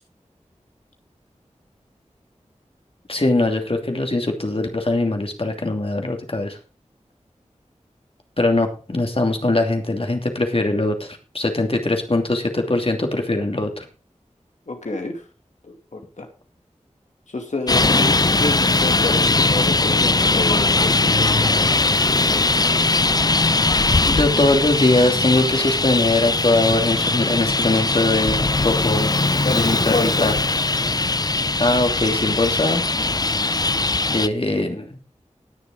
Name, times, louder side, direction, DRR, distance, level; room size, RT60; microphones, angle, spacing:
voice 1, 3.1-6.6 8.4-13.8 24.1-29.1 29.4-30.3 31.6-32.8 33.4-33.6 34.1-35.0, left 2 dB, 50° left, 4 dB, 2.7 m, -21 dB
voice 2, 14.7-15.2 15.6-16.3 17.3-21.8 29.4-30.4, left 2 dB, 75° left, 3 dB, 2.5 m, -29 dB
Traffic noise roadway noise, 17.7-34.3, left 3 dB, 30° left, 0.5 m, -20 dB
19.5 x 7.0 x 3.8 m, 0.35 s
wide cardioid pair, 50°, 12 cm